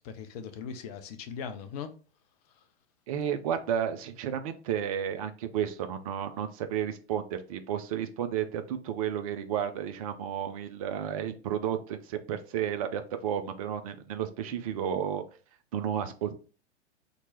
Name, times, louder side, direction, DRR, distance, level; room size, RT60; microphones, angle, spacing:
voice 1, 0.0-1.9, left 6 dB, 35° left, 0.5 m, -39 dB
voice 2, 3.1-15.2 15.7-16.4, right 9 dB, 35° right, 0.4 m, -32 dB
2.9 x 2.2 x 4.2 m
figure-of-eight pair, 100°, 34 cm